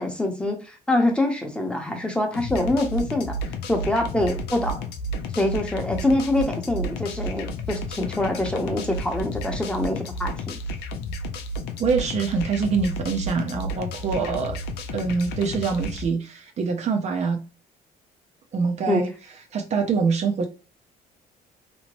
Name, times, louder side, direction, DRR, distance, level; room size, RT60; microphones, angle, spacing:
voice 1, 0.0-3.4 3.7-4.9 5.3-10.6 18.9-19.0, left 1 dB, 5° left, 0.7 m, -25 dB
sound 1, 2.3-16.1, equal, 85° left, 0.5 m, -32 dB
voice 2, 11.8-14.6 14.9-17.4 18.5-19.1 19.5-20.5, right 5 dB, 40° right, 0.4 m, -24 dB
2.8 x 2.0 x 2.9 m
cardioid pair, 110°, 17 cm